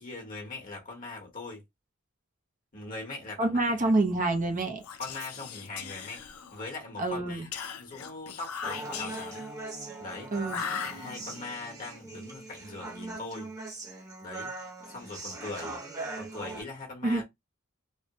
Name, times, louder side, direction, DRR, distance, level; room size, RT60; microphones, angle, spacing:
voice 1, 0.0-1.6 2.7-3.8 5.0-6.2 6.5-7.5 7.8-9.5 10.0-10.3 10.9-13.5 14.2-14.5 14.9-15.8 16.1-17.2, left 3 dB, 40° left, 1.2 m, -41 dB
voice 2, 3.4-4.8 7.0-7.5 10.3-10.6 17.0-17.2, right 2 dB, 35° right, 0.6 m, -27 dB
Whispering, 4.8-6.8 7.5-9.5 10.4-11.5, left 7 dB, 90° left, 0.4 m, -39 dB
Human voice, 8.6-16.6, right 3 dB, 15° right, 1.0 m, -41 dB
3.2 x 2.1 x 2.9 m
head